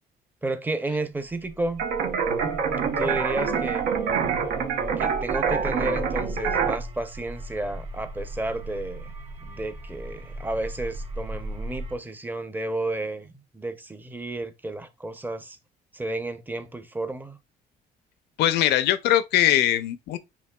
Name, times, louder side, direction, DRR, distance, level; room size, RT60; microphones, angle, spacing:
voice 1, 0.4-1.8 3.0-3.9 5.0-9.1 9.4-15.6 15.9-17.4, right 2 dB, 10° right, 0.6 m, -32 dB
sound 1, 1.3-11.9, right 1 dB, 35° right, 1.8 m, -37 dB
sound 2, 1.8-6.8, right 6 dB, 80° right, 0.9 m, -26 dB
voice 2, 18.4-20.2, left 12 dB, 80° left, 0.6 m, -21 dB
8.2 x 2.8 x 2.3 m
cardioid pair, 110°, 17 cm